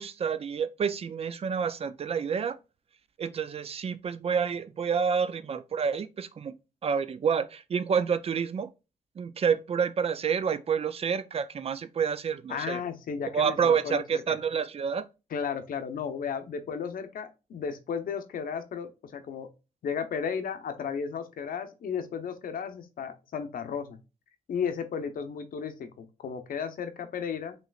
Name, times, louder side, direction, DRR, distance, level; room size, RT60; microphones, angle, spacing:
voice 1, 0.0-2.6 3.2-6.5 6.8-8.7 9.2-12.8 13.3-15.1, right 6 dB, 45° right, 0.4 m, -28 dB
voice 2, 12.5-14.2 15.3-19.5 19.8-24.0 24.5-27.5, left 6 dB, 80° left, 0.7 m, -34 dB
5.4 x 3.1 x 2.3 m
wide cardioid pair, 120°, 14 cm